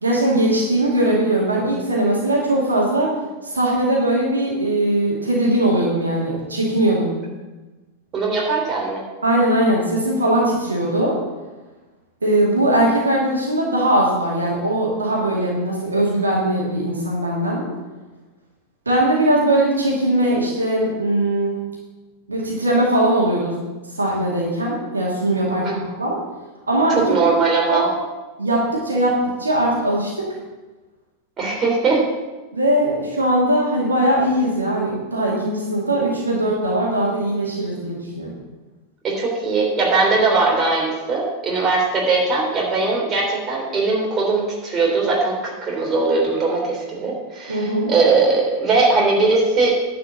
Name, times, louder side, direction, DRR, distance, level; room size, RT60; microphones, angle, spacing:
voice 1, 0.0-3.1 3.5-7.1 9.2-11.2 12.2-17.7 18.9-21.6 22.3-23.5 23.9-26.2 26.7-27.0 27.7-27.9 28.4-30.3 32.5-38.3 47.5-47.9, right 1 dB, 75° right, -3 dB, 2.2 m, -20 dB
voice 2, 8.1-9.0 25.5-25.8 26.9-27.9 31.4-32.0 39.0-49.7, right 3 dB, 25° right, -2 dB, 3.2 m, -20 dB
11.0 x 5.1 x 7.5 m, 1.2 s
figure-of-eight pair, 90°, 0 cm